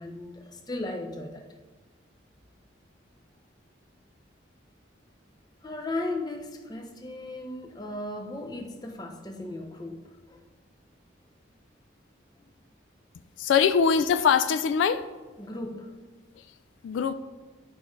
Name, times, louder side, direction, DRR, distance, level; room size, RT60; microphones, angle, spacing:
voice 1, 0.0-1.5 5.6-10.4 12.4-12.5 15.4-16.0, left 2 dB, 20° left, 4 dB, 0.6 m, -36 dB
voice 2, 13.4-15.0 16.8-17.1, left 6 dB, 75° left, 11 dB, 0.3 m, -22 dB
10.5 x 4.6 x 3.1 m, 1.3 s
head